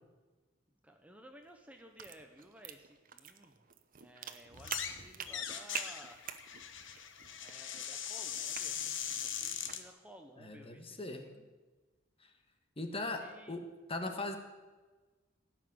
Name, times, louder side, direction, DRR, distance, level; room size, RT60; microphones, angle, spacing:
voice 1, 0.8-3.6 4.0-6.2 7.4-8.8 9.2-11.5 13.0-13.6, right 1 dB, 5° right, 4 dB, 0.9 m, -56 dB
sound 1, 1.4-9.9, right 8 dB, 45° right, 0.9 m, -47 dB
sound 2, 4.6-5.0 5.3-9.8, left 8 dB, 70° left, 1.2 m, -40 dB
voice 2, 10.4-11.3 12.2-12.3 12.8-14.4, left 2 dB, 30° left, 5 dB, 1.4 m, -39 dB
17.5 x 6.2 x 9.5 m, 1.3 s
head